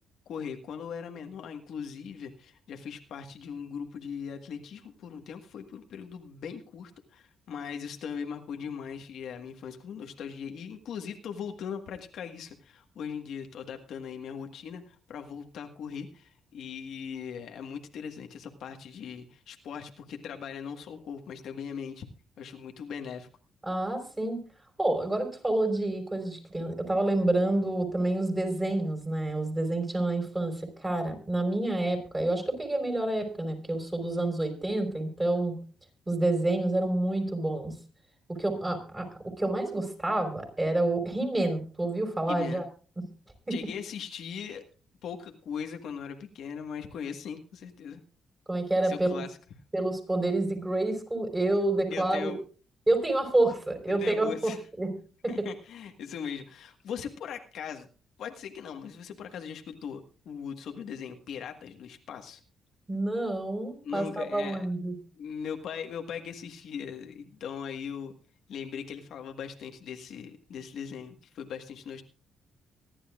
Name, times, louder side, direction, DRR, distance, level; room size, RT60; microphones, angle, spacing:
voice 1, 0.3-22.1 22.4-23.3 42.3-42.6 43.5-44.6 45.0-48.0 48.8-49.4 51.9-52.4 53.9-54.6 55.3-57.9 58.2-62.4 63.8-64.7 65.2-68.1 68.5-72.0, left 7 dB, 75° left, 5 dB, 1.6 m, -39 dB
voice 2, 23.6-24.4 24.8-35.5 36.1-37.7 38.3-39.1 39.4-42.6 43.5-43.6 48.5-49.2 49.7-52.3 52.9-54.5 54.8-54.9 55.2-55.3 62.9-64.9, right 2 dB, 15° right, 4 dB, 5.1 m, -28 dB
24.5 x 11.0 x 2.5 m, 0.37 s
cardioid pair, 90°, 0 cm